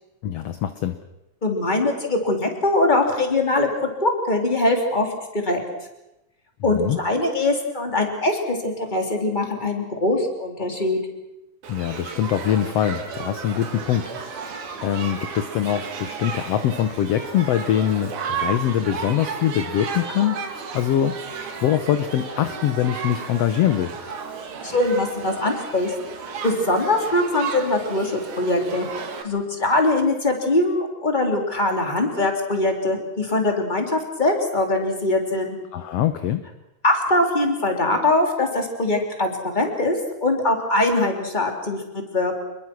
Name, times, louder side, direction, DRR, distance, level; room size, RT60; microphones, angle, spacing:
voice 1, 0.2-1.0 6.7-7.0 11.7-14.5 14.8-20.4 20.7-21.2 21.6-23.9 35.7-36.4, left 10 dB, 65° left, 10 dB, 1.9 m, -23 dB
voice 2, 1.4-3.7 4.0-5.6 6.6-11.0 24.6-25.9 26.4-28.9 29.2-35.6 36.8-40.0 40.2-42.4, left 2 dB, 15° left, 3 dB, 3.5 m, -22 dB
Shout / Human group actions, 11.6-29.2, right 5 dB, 85° right, 3.6 m, -33 dB
26.5 x 22.0 x 6.2 m, 0.93 s
omnidirectional pair, 3.4 m